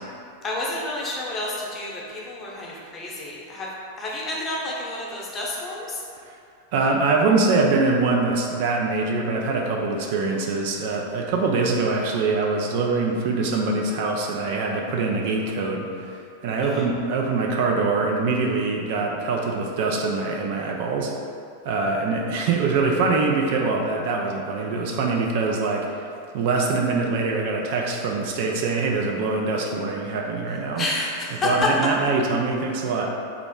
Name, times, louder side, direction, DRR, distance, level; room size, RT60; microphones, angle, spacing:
voice 1, 0.4-3.7 4.0-6.0 16.6-16.9 30.8-31.5, left 2 dB, 20° left, -4 dB, 0.8 m, -30 dB
voice 2, 6.7-16.1 16.4-21.1 21.6-25.9 26.3-30.9 31.4-33.1, right 3 dB, 50° right, 0 dB, 0.4 m, -23 dB
3.4 x 2.9 x 3.6 m, 2.4 s
figure-of-eight pair, 90°, 0 cm